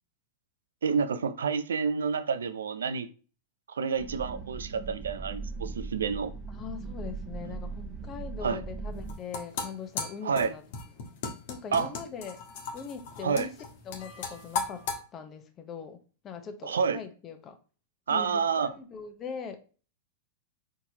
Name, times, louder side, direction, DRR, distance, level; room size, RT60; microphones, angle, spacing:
voice 1, 0.8-3.1 3.7-6.3 8.4-8.6 10.2-10.5 11.7-11.9 13.2-13.5 16.6-17.0 18.1-18.7, right 6 dB, 85° right, 0.5 m, -29 dB
sound 1, 4.0-9.1, right 4 dB, 15° right, 1.0 m, -39 dB
voice 2, 6.5-10.6 11.5-12.4 12.7-13.5 13.9-14.9 15.1-17.6 18.1-19.6, left 6 dB, 30° left, 0.8 m, -41 dB
sound 2, 8.9-15.0, left 5 dB, 60° left, 1.2 m, -36 dB
4.5 x 3.7 x 2.8 m
hypercardioid pair, 115°, 0 cm